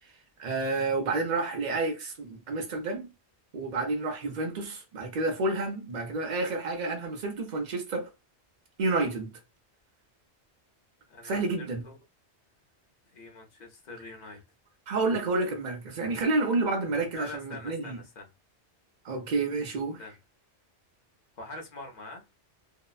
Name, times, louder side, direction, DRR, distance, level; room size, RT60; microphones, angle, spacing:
voice 1, 0.4-3.1 3.5-8.1 8.8-9.3 11.2-11.8 14.9-18.0 19.0-20.0, right 3 dB, 50° right, 0.7 m, -29 dB
voice 2, 11.1-12.0 13.0-14.4 17.2-18.3 20.0-20.2 21.4-22.2, left 2 dB, 45° left, 0.8 m, -44 dB
2.7 x 2.1 x 2.3 m
omnidirectional pair, 1.1 m